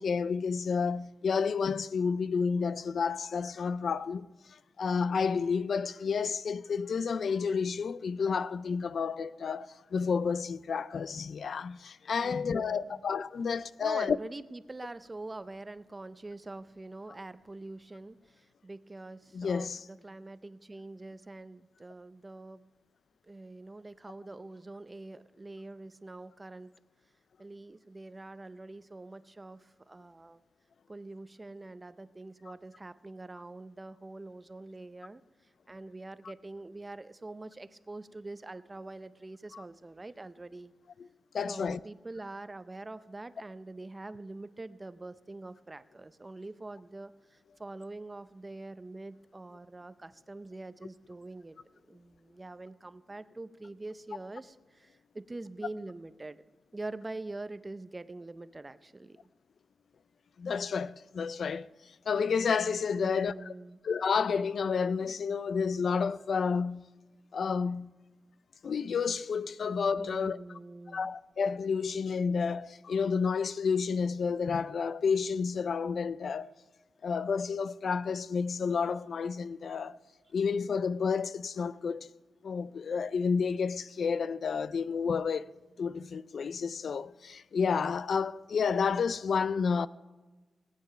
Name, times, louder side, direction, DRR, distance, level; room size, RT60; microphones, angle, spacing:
voice 1, 0.0-14.2 19.3-19.8 39.5-39.6 41.3-41.8 60.4-61.7 62.1-63.5 63.8-66.9 67.3-67.9 68.6-70.4 70.9-76.5 77.0-80.0 80.3-82.1 82.4-85.5 85.8-89.9, left 5 dB, 65° left, 0.3 m, -30 dB
voice 2, 12.2-13.0 13.8-22.6 23.3-26.7 27.4-30.4 30.9-35.2 35.7-40.7 41.5-56.4 56.7-59.3 63.0-63.8 70.0-71.1, right 2 dB, 20° right, 0.5 m, -44 dB
18.5 x 9.3 x 5.6 m
wide cardioid pair, 115°, 0 cm